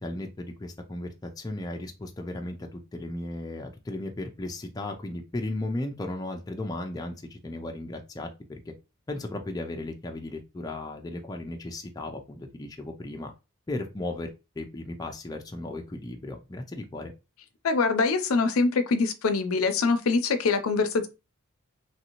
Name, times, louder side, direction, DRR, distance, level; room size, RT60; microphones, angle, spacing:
voice 1, 0.0-8.7 9.1-13.3 13.7-14.3 14.6-17.1, left 2 dB, 15° left, 0.4 m, -35 dB
voice 2, 17.6-21.1, left 4 dB, 85° left, 0.5 m, -24 dB
3.1 x 2.6 x 2.9 m
head